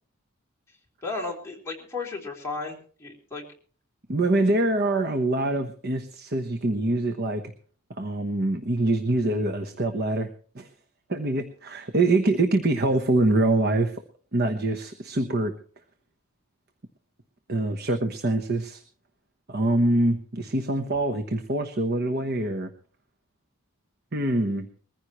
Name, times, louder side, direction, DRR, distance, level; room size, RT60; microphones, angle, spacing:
voice 1, 1.0-3.5, left 3 dB, 15° left, -2 dB, 3.5 m, -34 dB
voice 2, 4.1-7.4 8.0-10.7 11.1-14.0 14.3-15.6 17.5-18.8 19.5-22.7 24.1-24.7, right 2 dB, 45° right, 7 dB, 1.1 m, -24 dB
21.5 x 15.0 x 3.1 m, 0.43 s
head